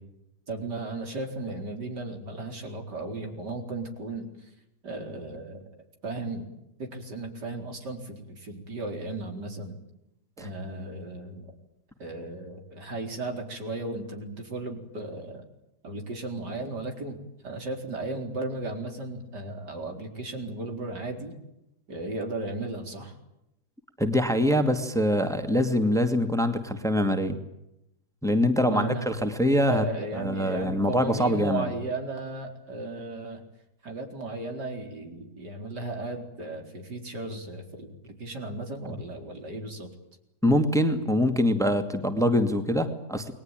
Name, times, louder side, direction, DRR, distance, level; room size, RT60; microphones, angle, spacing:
voice 1, 0.5-4.3 4.8-5.6 6.0-6.5 6.8-9.8 10.4-11.5 12.0-15.4 15.8-17.2 17.4-21.3 21.9-23.1 28.6-29.1 29.7-33.4 33.8-39.9, right 2 dB, 75° right, 4 dB, 4.9 m, -35 dB
voice 2, 24.0-27.4 28.2-29.8 30.1-31.7 40.4-43.3, equal, ahead, 7 dB, 2.3 m, -24 dB
29.0 x 21.0 x 9.2 m, 0.86 s
omnidirectional pair, 1.8 m